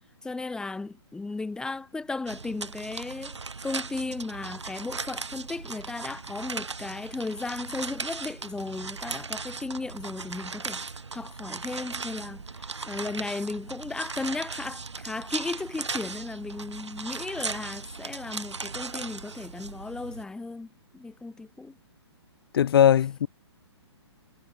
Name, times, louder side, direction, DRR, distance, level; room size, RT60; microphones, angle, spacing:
voice 1, 0.2-3.4 3.6-21.8, left 3 dB, 5° left, 1.6 m, -35 dB
sound 1, 2.3-20.2, right 4 dB, 85° right, 4.7 m, -37 dB
voice 2, 22.5-23.3, left 9 dB, 55° left, 1.1 m, -19 dB
hypercardioid pair, 130°, 15 cm